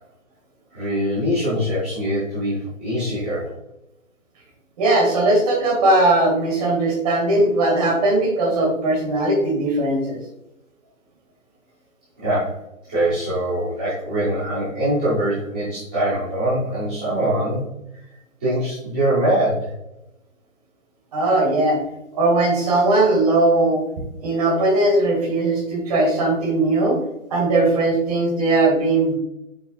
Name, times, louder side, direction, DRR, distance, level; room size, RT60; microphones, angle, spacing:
voice 1, 0.7-3.5 12.2-12.5 12.9-17.6 18.4-19.7, right 1 dB, 5° right, -14 dB, 0.6 m, -23 dB
voice 2, 4.8-10.2 21.1-21.8 22.2-23.8 24.2-27.0 27.3-29.1, right 2 dB, 30° right, 0 dB, 2.1 m, -19 dB
7.4 x 6.0 x 2.4 m, 0.87 s
hypercardioid pair, 165°, 40 cm